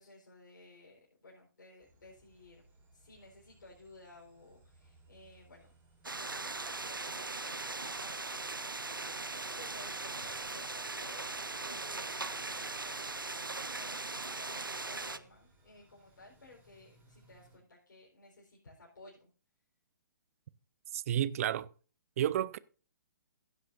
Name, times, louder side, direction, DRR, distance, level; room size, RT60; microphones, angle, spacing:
voice 1, 0.0-2.6 2.9-5.7 6.3-8.3 9.2-13.1 13.5-19.3, left 2 dB, 65° left, 4.3 m, -56 dB
sound 1, 1.8-17.6, right 2 dB, 15° right, 4.6 m, -65 dB
sound 2, 6.0-15.2, right 3 dB, 90° right, 0.7 m, -39 dB
voice 2, 20.9-21.7 22.2-22.6, right 11 dB, 45° right, 0.6 m, -31 dB
16.0 x 8.0 x 2.6 m
figure-of-eight pair, 125°, 11 cm